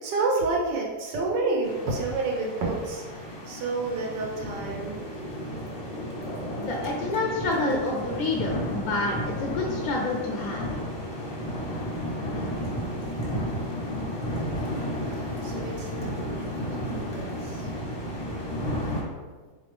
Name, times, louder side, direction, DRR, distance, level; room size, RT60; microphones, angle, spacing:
voice 1, 0.0-5.0 15.4-17.7, right 3 dB, 75° right, -1 dB, 1.5 m, -29 dB
sound 1, 1.6-19.0, equal, 20° left, 0.7 m, -33 dB
voice 2, 6.6-10.7 12.3-12.5, left 2 dB, 70° left, -1 dB, 0.8 m, -28 dB
4.0 x 3.3 x 3.3 m, 1.4 s
omnidirectional pair, 2.0 m